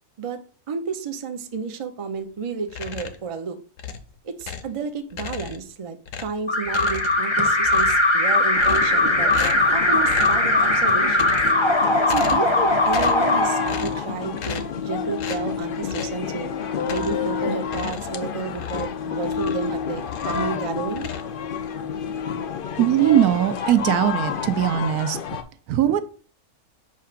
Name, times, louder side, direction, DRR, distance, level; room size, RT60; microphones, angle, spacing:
voice 1, 0.7-3.6 4.2-9.3 9.7-11.4 12.1-16.5 16.9-21.1, right 5 dB, 50° right, 6 dB, 0.4 m, -31 dB
sound 1, 2.7-3.3 3.8-4.8 5.1-5.7 6.1-7.3 7.6-8.2 8.6-9.0 9.3-9.7 10.0-10.5 11.0-11.7 12.0-12.6 12.8-13.3 13.7-14.1 14.4-14.8 15.2-15.5 15.9-16.2 16.8-17.3 17.7-19.7 20.0-20.5 20.9-21.7, left 8 dB, 65° left, 1.0 m, -36 dB
Alarm, 6.5-14.4, left 1 dB, 30° left, 0.6 m, -20 dB
sound 2, 8.5-25.4, left 7 dB, 80° left, 0.4 m, -30 dB
voice 2, 22.8-25.2 25.7-26.0, right 11 dB, 85° right, 11 dB, 1.1 m, -20 dB
7.2 x 2.5 x 5.7 m, 0.41 s
omnidirectional pair, 1.6 m